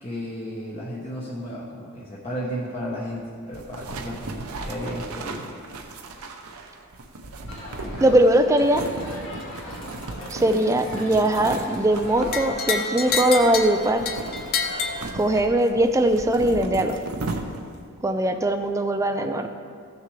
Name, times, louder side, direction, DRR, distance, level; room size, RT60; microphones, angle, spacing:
voice 1, 0.0-5.5 7.8-8.2, equal, 25° left, -6 dB, 1.1 m, -33 dB
sound 1, 3.5-17.9, right 2 dB, 75° right, 0.8 m, -36 dB
Crowd, 7.5-15.0, left 1 dB, 60° left, 2.2 m, -40 dB
voice 2, 8.0-8.9 10.3-14.1 15.1-17.0 18.0-19.5, right 1 dB, 15° right, 6 dB, 0.4 m, -20 dB
sound 2, 12.3-15.7, left 5 dB, 45° left, 0.6 m, -28 dB
15.0 x 6.7 x 3.2 m, 2.2 s
head